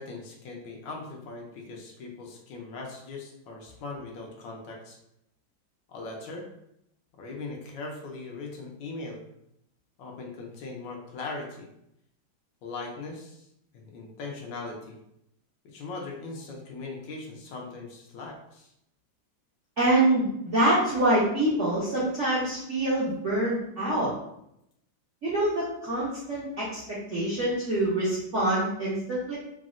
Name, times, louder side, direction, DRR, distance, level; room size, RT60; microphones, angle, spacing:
voice 1, 0.0-5.0 5.9-6.5 7.2-9.2 10.0-11.7 12.6-13.4 13.7-15.0 15.7-18.7, left 3 dB, 85° left, 0 dB, 1.4 m, -39 dB
voice 2, 19.8-24.1 25.2-29.4, right 1 dB, 65° right, -8 dB, 0.7 m, -25 dB
3.9 x 2.0 x 2.4 m, 0.78 s
omnidirectional pair, 2.1 m